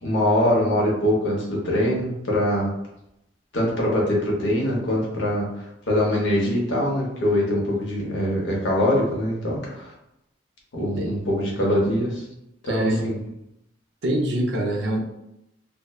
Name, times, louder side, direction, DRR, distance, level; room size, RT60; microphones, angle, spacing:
voice 1, 0.0-2.7 3.5-5.5 5.9-9.9 10.7-12.2 12.6-13.2, left 1 dB, 80° left, -3 dB, 0.8 m, -23 dB
voice 2, 12.6-13.0 14.0-15.0, right 1 dB, 65° right, -1 dB, 0.5 m, -24 dB
2.5 x 2.1 x 2.3 m, 0.83 s
head